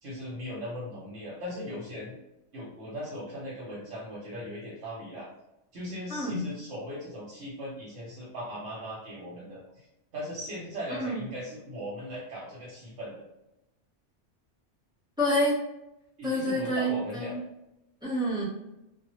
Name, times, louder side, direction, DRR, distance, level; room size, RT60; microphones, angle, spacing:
voice 1, 0.0-2.2 2.5-5.3 5.7-9.9 10.1-13.2 16.2-17.4, equal, 80° right, -6 dB, 1.0 m, -38 dB
voice 2, 6.1-6.5 10.9-11.2 15.2-15.6 16.2-17.4 18.0-18.4, equal, 5° right, -8 dB, 0.7 m, -28 dB
2.1 x 2.1 x 2.9 m, 0.90 s
omnidirectional pair, 1.2 m